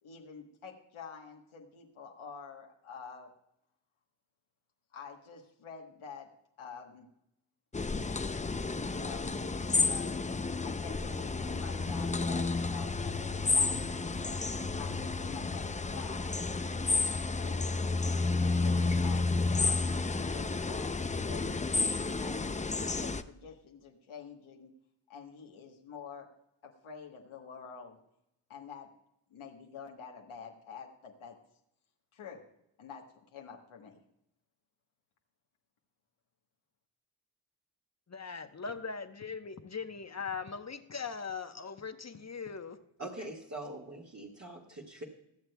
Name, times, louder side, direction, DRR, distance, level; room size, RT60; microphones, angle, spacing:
voice 1, 0.0-3.3 4.9-7.1 8.9-10.3 10.6-14.4 14.7-16.3 17.3-17.8 18.4-19.8 20.2-21.7 22.2-24.7 25.1-26.3 26.6-28.0 28.5-28.9 29.3-31.4 32.1-32.5 32.8-34.0, left 6 dB, 85° left, 1 dB, 1.3 m, -48 dB
sound 1, 7.7-23.2, left 3 dB, 15° left, 0.5 m, -31 dB
voice 2, 38.1-42.8 43.2-43.3, left 5 dB, 35° left, 8 dB, 1.0 m, -40 dB
voice 3, 43.0-45.1, right 2 dB, 35° right, -4 dB, 1.9 m, -43 dB
22.0 x 7.5 x 2.3 m, 0.80 s
cardioid pair, 45°, 48 cm